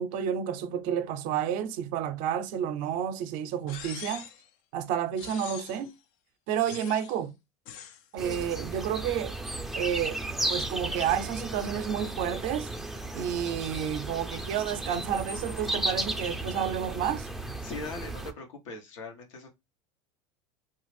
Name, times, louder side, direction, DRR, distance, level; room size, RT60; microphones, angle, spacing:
voice 1, 0.0-4.3 4.7-5.9 6.5-7.3 8.1-9.4 9.7-10.2 10.5-12.7 13.1-17.3, right 9 dB, 60° right, 0.5 m, -30 dB
sound 1, 3.7-4.5 5.2-5.9 6.7-7.2 7.7-8.0, left 9 dB, 65° left, 0.4 m, -43 dB
sound 2, 8.2-18.3, right 1 dB, ahead, 0.4 m, -35 dB
voice 2, 17.6-19.5, left 3 dB, 85° left, 0.8 m, -40 dB
2.4 x 2.3 x 3.2 m
supercardioid pair, 100°, 16 cm